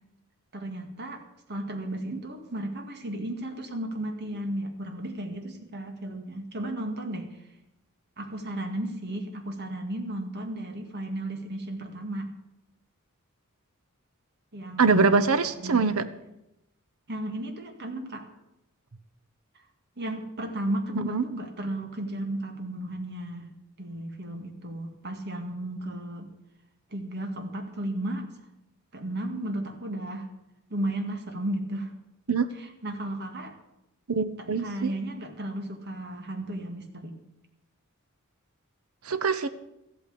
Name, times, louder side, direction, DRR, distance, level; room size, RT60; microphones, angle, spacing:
voice 1, 0.5-1.2 1.5-7.4 8.2-12.3 14.5-15.2 15.6-16.0 17.1-18.3 20.0-23.5 23.8-26.3 26.9-28.3 28.9-30.3 30.7-31.9 32.5-33.6 34.4-37.1, right 1 dB, 50° right, 5 dB, 2.1 m, -34 dB
voice 2, 14.8-16.0 21.0-21.2 32.3-32.5 34.1-34.9 39.1-39.5, right 4 dB, 85° right, 12 dB, 1.0 m, -23 dB
14.0 x 8.7 x 8.5 m, 0.87 s
head